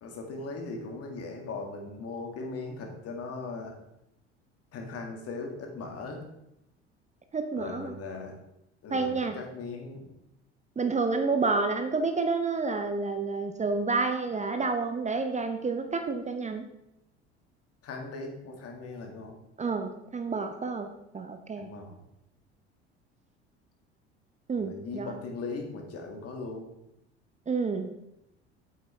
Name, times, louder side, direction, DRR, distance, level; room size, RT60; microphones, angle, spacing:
voice 1, 0.0-3.8 4.7-6.2 7.6-8.3 8.8-10.1 17.8-19.4 21.6-22.0 24.6-26.7, left 3 dB, 45° left, 2 dB, 2.0 m, -39 dB
voice 2, 7.3-7.9 8.9-9.4 10.8-16.6 19.6-21.7 24.5-25.2 27.5-27.9, right 4 dB, 20° right, 7 dB, 0.8 m, -29 dB
8.4 x 7.8 x 3.4 m, 0.85 s
figure-of-eight pair, 60°, 34 cm